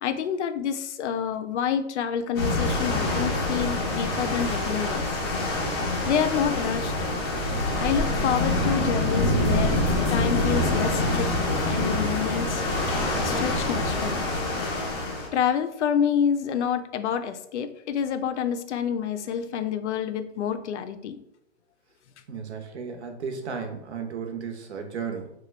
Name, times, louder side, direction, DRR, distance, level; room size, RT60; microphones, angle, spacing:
voice 1, 0.0-5.1 6.1-7.1 7.8-9.8 10.1-11.3 11.7-12.6 13.2-14.3 15.3-21.2, left 8 dB, 85° left, 10 dB, 0.5 m, -28 dB
sound 1, 2.4-15.3, left 2 dB, 25° left, 0.4 m, -25 dB
voice 2, 22.3-25.3, right 6 dB, 70° right, 5 dB, 0.8 m, -34 dB
3.0 x 2.3 x 3.1 m, 0.78 s
hypercardioid pair, 160°, 34 cm